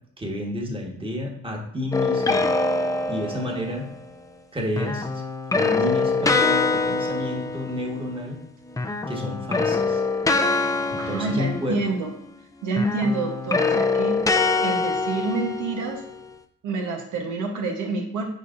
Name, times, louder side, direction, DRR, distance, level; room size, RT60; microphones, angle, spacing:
voice 1, 0.2-2.5 3.1-3.9 4.5-5.2 5.5-8.4 9.1-10.0 10.9-11.8, left 1 dB, 15° right, 0 dB, 1.5 m, -30 dB
sound 1, 1.9-3.8 4.8-8.4 8.7-12.3 12.7-16.2, left 3 dB, 10° left, 0.5 m, -24 dB
voice 2, 11.0-12.1 12.6-16.0 16.6-18.3, right 3 dB, 85° right, 1 dB, 1.1 m, -27 dB
9.3 x 4.1 x 2.6 m, 0.72 s
cardioid pair, 90°, 30 cm